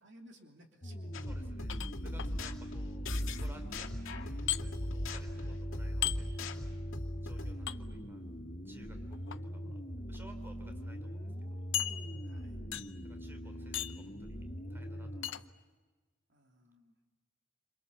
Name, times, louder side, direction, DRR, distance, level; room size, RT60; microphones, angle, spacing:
voice 1, 0.0-1.4 5.3-5.6 7.3-7.7 12.2-12.6 16.3-17.0, right 1 dB, 65° right, 3 dB, 3.0 m, -59 dB
sound 1, 0.8-15.3, equal, 35° left, 3.7 m, -42 dB
sound 2, 1.1-7.5, left 1 dB, 90° left, 2.5 m, -39 dB
voice 2, 1.3-1.7 2.0-3.1 3.4-6.7 7.2-8.2 8.6-9.8 10.1-11.7 13.0-14.4 14.7-15.1, right 1 dB, 10° right, 5 dB, 3.8 m, -58 dB
sound 3, 1.7-2.3 4.5-4.6 6.0-6.2 7.7-7.8 9.1-9.4 10.1-10.2 10.6-10.7 11.7-12.4 12.7-13.1 13.7-14.1 15.2-15.4, left 13 dB, 70° left, 0.8 m, -35 dB
28.5 x 27.0 x 7.1 m, 1.3 s
head